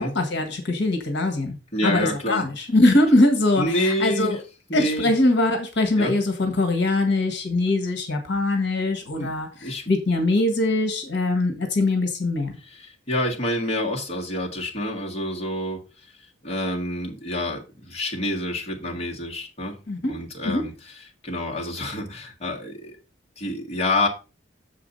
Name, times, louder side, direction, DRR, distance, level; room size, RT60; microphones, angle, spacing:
voice 1, 0.0-1.6 1.8-4.4 4.7-12.5 19.9-20.2 20.4-20.6, left 2 dB, 65° left, 1.6 m, -22 dB
voice 2, 1.7-2.5 3.6-4.4 4.7-5.1 6.0-6.1 9.2-9.3 9.6-9.9 12.7-15.8 16.4-19.8 20.1-20.7 21.2-22.9 23.4-24.1, left 1 dB, 35° left, 1.8 m, -27 dB
7.1 x 4.9 x 5.4 m
head